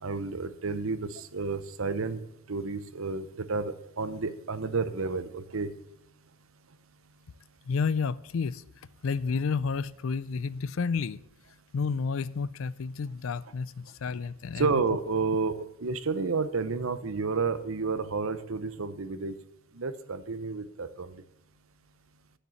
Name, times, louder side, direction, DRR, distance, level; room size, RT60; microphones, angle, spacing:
voice 1, 0.0-2.2 2.5-5.7 14.6-19.3 19.8-21.2, right 4 dB, 70° right, 13 dB, 0.7 m, -31 dB
voice 2, 7.7-8.6 9.0-11.2 11.7-14.7, left 5 dB, 70° left, 19 dB, 0.4 m, -30 dB
10.5 x 6.6 x 7.7 m, 0.87 s
head